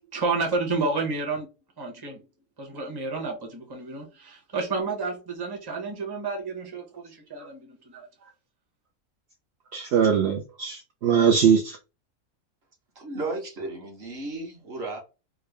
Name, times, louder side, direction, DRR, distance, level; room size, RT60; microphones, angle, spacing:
voice 1, 0.1-1.5 1.8-2.2 2.6-8.1, right 3 dB, 20° right, 0.8 m, -30 dB
voice 2, 9.7-11.8, right 7 dB, 65° right, 0.7 m, -21 dB
voice 3, 12.9-15.0, right 2 dB, 45° right, 1.2 m, -34 dB
3.6 x 2.2 x 3.2 m
omnidirectional pair, 1.6 m